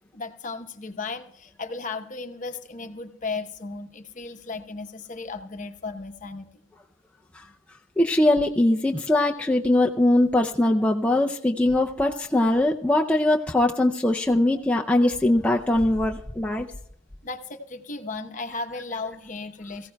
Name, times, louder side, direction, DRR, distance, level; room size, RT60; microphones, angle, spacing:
voice 1, 0.1-6.6 7.4-7.5 17.2-19.9, left 3 dB, 40° left, 6 dB, 0.9 m, -35 dB
voice 2, 8.0-16.7, left 1 dB, 5° left, 0 dB, 0.4 m, -21 dB
22.0 x 15.0 x 2.3 m, 0.72 s
head